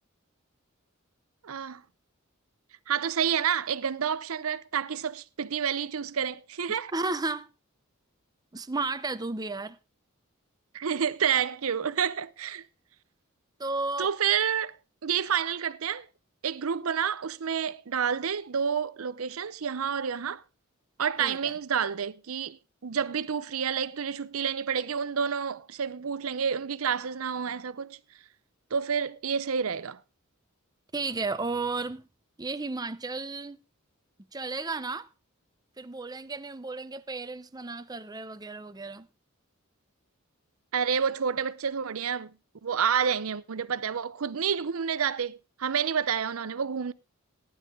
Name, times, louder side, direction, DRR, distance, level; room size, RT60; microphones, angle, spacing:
voice 1, 1.4-1.8 2.9-6.9 10.7-12.6 14.0-14.8 15.0-16.1 16.4-20.4 21.0-28.0 28.7-30.0 40.7-42.3 42.6-46.9, right 7 dB, 80° right, 0.6 m, -29 dB
voice 2, 6.9-7.5 8.5-9.8 13.6-14.1 21.2-21.6 30.9-32.0 32.4-33.6 34.3-35.1 35.8-39.1, right 3 dB, 20° right, 0.7 m, -33 dB
15.0 x 10.0 x 3.7 m
head